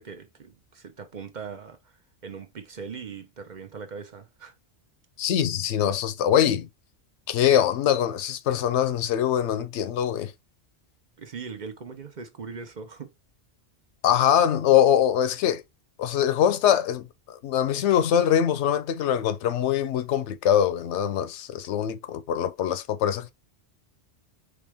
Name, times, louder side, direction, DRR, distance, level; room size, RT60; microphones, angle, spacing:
voice 1, 0.0-4.5 11.2-13.1, right 5 dB, 45° right, 0.8 m, -40 dB
voice 2, 5.2-6.7 7.3-10.3 14.0-15.6 16.0-23.3, left 10 dB, 85° left, 0.9 m, -23 dB
4.3 x 3.3 x 3.3 m
omnidirectional pair, 1.2 m